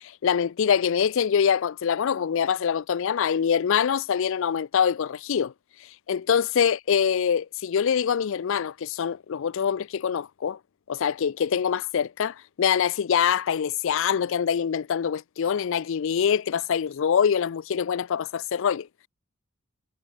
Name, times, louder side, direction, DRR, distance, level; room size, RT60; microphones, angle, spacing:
voice 1, 0.2-5.5 6.1-10.6 10.9-18.9, left 7 dB, 65° left, 0.4 m, -24 dB
head